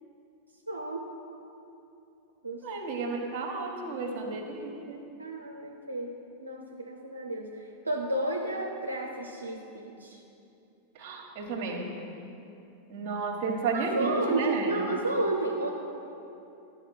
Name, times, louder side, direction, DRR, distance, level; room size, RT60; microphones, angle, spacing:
voice 1, 0.7-1.1 2.4-2.6 5.2-10.2 13.7-15.7, right 2 dB, 80° right, 0 dB, 0.7 m, -32 dB
voice 2, 2.6-5.0 10.9-11.8 12.9-14.8, right 3 dB, 45° right, 2 dB, 1.5 m, -32 dB
11.5 x 5.1 x 6.5 m, 2.8 s
figure-of-eight pair, 90°, 0 cm